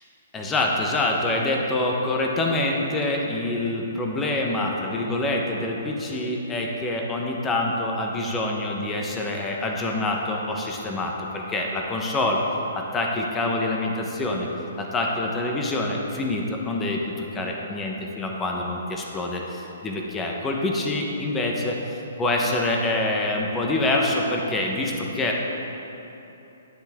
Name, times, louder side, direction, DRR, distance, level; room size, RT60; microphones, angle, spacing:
voice 1, 0.3-12.4 12.7-14.5 14.8-25.4, left 2 dB, 10° left, 0 dB, 0.8 m, -26 dB
12.5 x 9.8 x 3.5 m, 2.9 s
hypercardioid pair, 165°, 0 cm